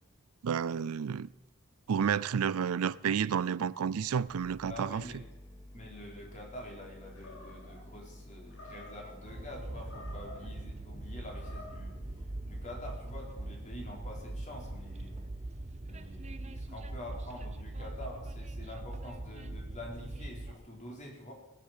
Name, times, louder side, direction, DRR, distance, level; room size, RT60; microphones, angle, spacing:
voice 1, 0.4-1.3 1.9-5.0, right 7 dB, 80° right, 0.4 m, -30 dB
sound 1, 4.3-15.3, left 1 dB, 10° left, 2.2 m, -51 dB
voice 2, 4.7-5.2 5.7-11.9 12.4-15.2 15.8-21.3, left 1 dB, 35° left, 4.2 m, -46 dB
Animal, 7.1-7.8 8.5-9.1 9.8-10.5 11.2-11.9, left 2 dB, 75° left, 4.2 m, -50 dB
Train, 9.3-20.5, right 2 dB, 30° right, 0.8 m, -42 dB
17.5 x 8.7 x 7.6 m
head